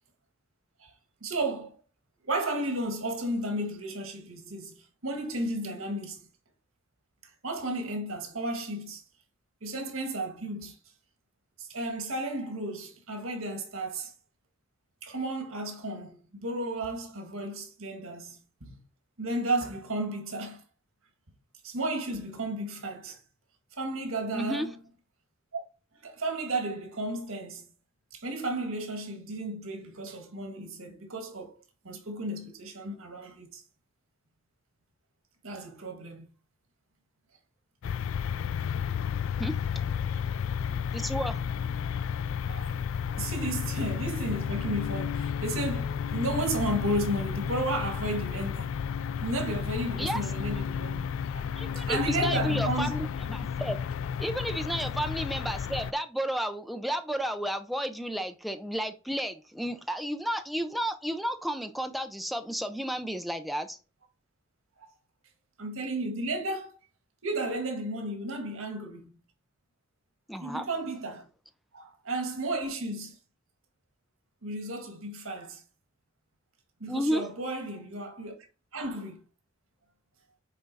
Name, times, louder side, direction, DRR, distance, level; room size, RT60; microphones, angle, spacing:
voice 1, 1.2-1.7 2.2-6.3 7.4-9.0 9.6-10.8 11.6-14.1 15.0-18.8 19.2-20.6 21.6-23.2 23.8-24.8 25.5-25.6 26.0-27.7 28.1-31.6 31.8-33.6 35.4-36.2 40.7-40.8 42.5-42.8 43.2-48.8 49.2-51.0 51.3-51.4 51.8-52.9 64.8-64.9 65.6-66.8 67.2-69.2 70.4-71.3 71.7-73.2 74.4-75.6 76.8-78.4 78.7-79.2, right 1 dB, 85° right, 1.7 m, -33 dB
voice 2, 24.3-24.7 39.4-39.6 40.9-41.4 50.0-50.2 51.6-53.8 54.2-63.8 70.3-70.7 76.9-77.3, equal, ahead, 0.5 m, -32 dB
sound 1, 37.8-55.9, left 7 dB, 70° left, 0.3 m, -32 dB
9.4 x 3.7 x 4.1 m
head